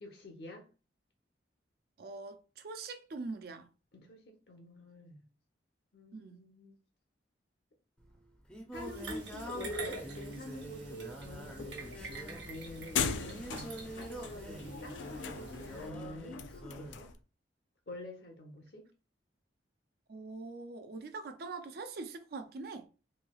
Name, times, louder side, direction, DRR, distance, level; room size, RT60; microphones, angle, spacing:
voice 1, 0.0-0.7 3.9-5.2 5.9-6.7 8.7-17.1 17.9-18.9, left 1 dB, 60° left, 0.8 m, -47 dB
voice 2, 2.0-3.7 6.1-6.4 20.1-22.9, right 3 dB, 55° right, 0.4 m, -43 dB
Singing, 8.0-17.0, right 1 dB, 5° left, 0.5 m, -46 dB
sound 1, 8.7-15.9, right 3 dB, 75° right, 0.9 m, -47 dB
sound 2, 11.2-17.2, left 6 dB, 85° left, 0.3 m, -40 dB
3.1 x 2.7 x 2.3 m
head